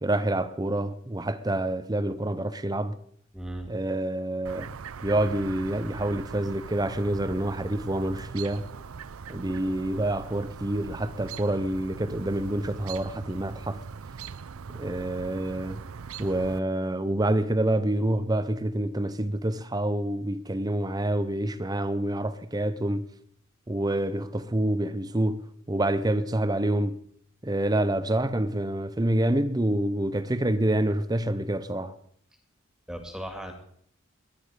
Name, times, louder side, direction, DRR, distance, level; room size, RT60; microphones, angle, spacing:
voice 1, 0.0-3.0 3.7-4.7 5.0-8.6 9.3-13.8 14.7-15.8 16.2-23.0 23.7-27.0 27.4-32.0, right 1 dB, 20° right, 0.7 m, -27 dB
voice 2, 3.3-3.7 9.6-9.7 32.9-33.5, equal, 5° right, 2.3 m, -37 dB
Chirp tweet, 4.5-16.6, right 6 dB, 85° right, 0.5 m, -41 dB
21.5 x 10.5 x 5.0 m
head